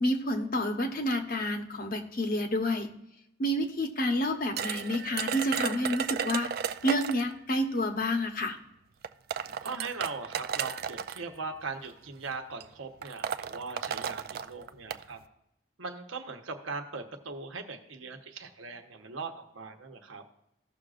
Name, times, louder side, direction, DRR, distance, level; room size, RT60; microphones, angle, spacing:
voice 1, 0.0-2.9 3.4-6.5 6.8-8.6, left 1 dB, 45° left, 5 dB, 1.0 m, -29 dB
sound 1, 4.6-7.3 8.4-8.5 9.0-11.2 12.1-12.3 12.6-12.7 13.0-15.0, right 7 dB, 50° right, 0.4 m, -34 dB
voice 2, 9.6-15.2 15.8-20.2, right 4 dB, 85° right, 5 dB, 1.1 m, -40 dB
15.5 x 6.4 x 2.5 m, 0.85 s
head